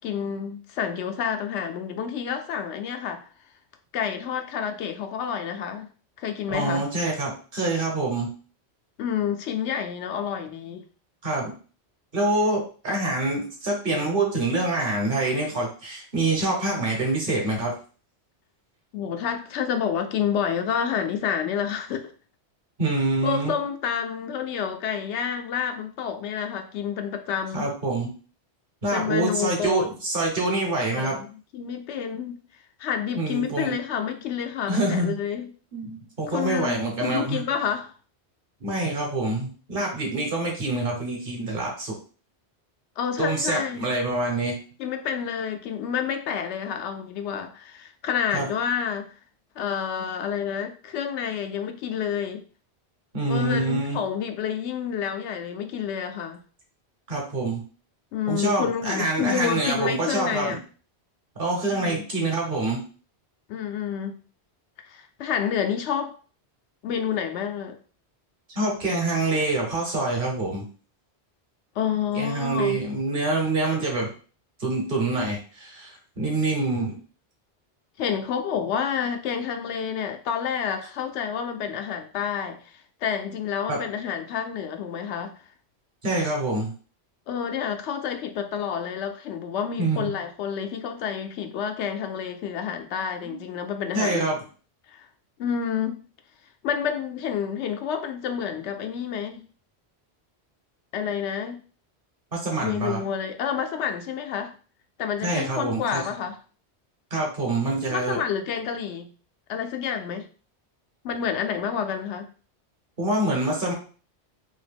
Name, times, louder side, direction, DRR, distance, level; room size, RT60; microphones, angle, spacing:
voice 1, 0.0-3.3 3.9-5.9 6.2-6.8 9.0-10.8 18.9-22.1 23.2-27.7 28.9-29.8 30.9-32.4 32.8-35.5 36.3-37.9 43.0-43.9 44.8-49.1 49.6-52.4 53.3-56.4 58.1-60.6 61.7-62.0 63.5-64.2 64.8-66.2 66.8-67.8 71.8-72.8 78.0-85.3 87.3-94.3 94.9-95.1 95.4-96.0 96.6-99.5 100.9-101.6 102.6-104.5 105.0-106.4 107.9-109.1 109.5-110.3 111.0-112.3, left 8 dB, 90° left, 0.9 m, -29 dB
voice 2, 6.5-8.3 11.2-11.5 12.1-17.7 22.8-23.5 27.5-28.1 28.8-31.2 33.2-33.8 34.7-35.2 35.7-37.4 38.6-41.9 43.2-44.6 48.3-48.5 53.1-54.0 57.1-57.6 58.3-60.6 61.4-62.8 68.5-70.6 72.1-74.1 74.6-77.0 83.7-83.8 86.0-86.7 89.8-90.1 93.3-93.4 93.9-94.4 102.3-103.0 105.2-106.0 107.1-108.2 113.0-113.7, right 2 dB, 55° right, 1.2 m, -26 dB
2.9 x 2.8 x 3.4 m
omnidirectional pair, 1.1 m